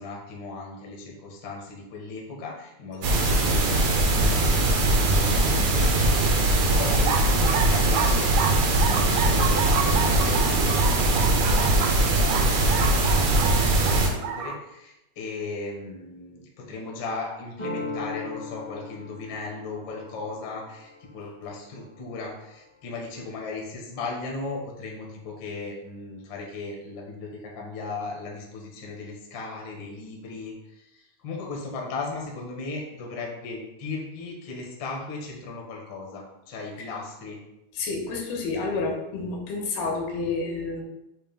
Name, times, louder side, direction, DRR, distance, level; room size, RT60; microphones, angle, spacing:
voice 1, 0.0-8.5 8.8-37.4, left 3 dB, 70° left, -1 dB, 1.1 m, -37 dB
sound 1, 3.0-14.1, right 2 dB, 70° right, 1.9 m, -21 dB
sound 2, 6.9-14.6, right 7 dB, 85° right, 2.5 m, -31 dB
sound 3, 17.6-23.1, left 3 dB, 20° left, 0.6 m, -39 dB
voice 2, 37.8-40.8, left 3 dB, 85° left, 1 dB, 3.1 m, -29 dB
7.2 x 2.7 x 5.3 m, 0.90 s
omnidirectional pair, 4.4 m